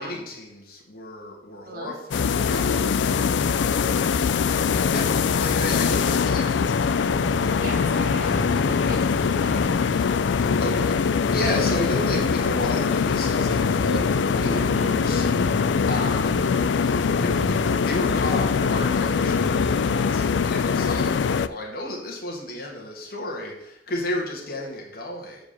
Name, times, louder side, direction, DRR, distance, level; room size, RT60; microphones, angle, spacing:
voice 1, 0.0-2.8 4.9-5.1 5.4-6.8 10.6-25.4, left 1 dB, 55° left, -2 dB, 1.9 m, -33 dB
sound 1, 2.1-21.5, left 6 dB, 85° left, 0.4 m, -22 dB
sound 2, 7.1-20.3, equal, ahead, 0.8 m, -36 dB
voice 2, 7.6-9.6, right 2 dB, 55° right, -2 dB, 2.0 m, -37 dB
7.1 x 5.0 x 6.6 m, 0.81 s
head